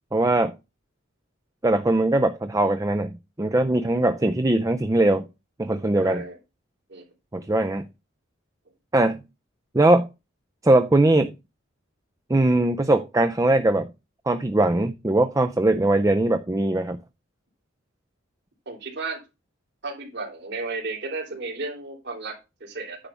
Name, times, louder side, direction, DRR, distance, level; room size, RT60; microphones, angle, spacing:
voice 1, 0.1-0.5 1.6-5.2 5.6-6.2 7.3-7.9 8.9-9.2 9.7-10.1 10.6-11.3 12.3-13.9 14.3-17.0, right 2 dB, 15° right, 8 dB, 0.5 m, -21 dB
voice 2, 6.0-6.4 6.9-7.1 18.6-19.2 19.8-22.3 22.6-23.0, right 3 dB, 60° right, 0 dB, 3.2 m, -33 dB
10.0 x 3.4 x 6.9 m, 0.26 s
head